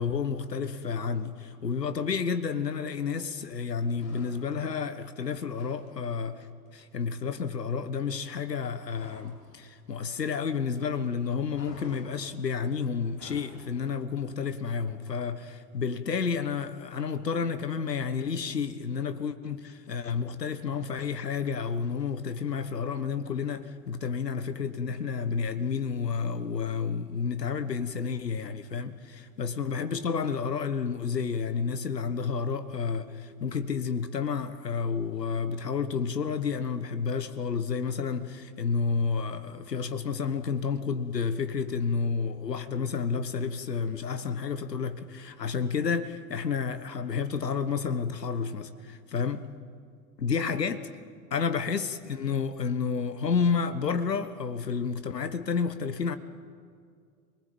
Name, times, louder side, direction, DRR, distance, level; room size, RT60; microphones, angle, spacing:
voice 1, 0.0-6.5 6.7-49.5 50.2-50.9 51.3-56.2, left 5 dB, 80° left, 1.4 m, -30 dB
sound 1, 3.9-4.7 5.0-5.9 6.1-6.4 6.7-9.4 9.7-10.8 11.0-13.6, left 2 dB, 35° left, 7.1 m, -53 dB
25.5 x 19.5 x 8.7 m
figure-of-eight pair, 85°, 48 cm